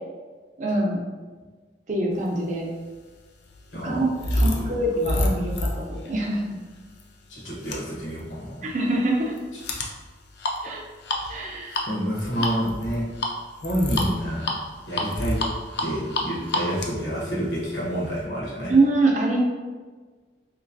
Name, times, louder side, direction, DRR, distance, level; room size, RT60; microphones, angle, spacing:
voice 1, 0.6-1.0 1.9-2.7 3.8-6.6 8.6-9.3 10.6-10.8 11.3-11.8 18.7-19.4, right 2 dB, 40° right, -1 dB, 0.5 m, -24 dB
sound 1, 2.6-18.2, left 1 dB, 65° left, 0.5 m, -30 dB
voice 2, 3.7-4.7 7.3-8.7 11.9-13.1 13.6-14.5 14.9-15.4 15.8-18.7, equal, 80° left, -6 dB, 1.1 m, -28 dB
3.3 x 2.9 x 2.6 m, 1.4 s
head